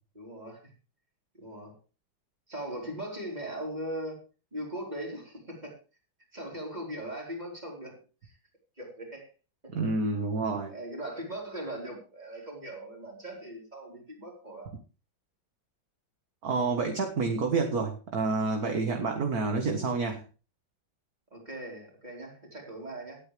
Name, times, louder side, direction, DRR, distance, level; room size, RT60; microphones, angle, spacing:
voice 1, 0.1-0.7 1.3-1.7 2.5-4.2 4.5-5.8 6.3-8.3 8.8-9.3 9.6-9.7 10.7-14.7 21.3-23.2, right 1 dB, 20° right, -1 dB, 4.7 m, -39 dB
voice 2, 9.7-10.7 16.4-20.2, right 4 dB, 50° right, 4 dB, 1.9 m, -28 dB
18.5 x 9.0 x 3.4 m, 0.34 s
omnidirectional pair, 2.2 m